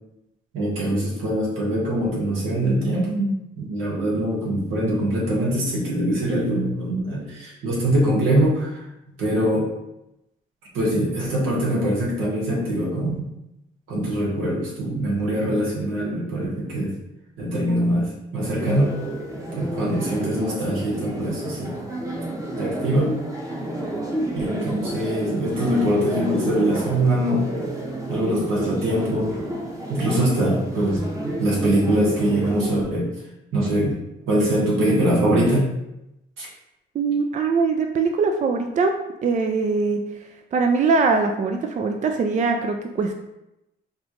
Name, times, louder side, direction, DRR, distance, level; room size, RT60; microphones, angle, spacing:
voice 1, 0.5-8.7 9.2-9.7 10.7-13.3 13.9-16.9 17.4-19.0 19.5-21.8 22.6-23.1 24.3-27.5 28.1-29.3 29.9-33.1 33.5-34.0 34.3-35.7 36.4-36.5, right 1 dB, 85° right, -5 dB, 1.5 m, -23 dB
sound 1, 18.6-32.8, right 1 dB, 15° right, 0.9 m, -31 dB
voice 2, 36.9-38.9 39.2-40.0 40.5-43.1, right 4 dB, 40° right, 5 dB, 0.4 m, -22 dB
5.3 x 2.6 x 3.0 m, 0.90 s
cardioid pair, 90°, 20 cm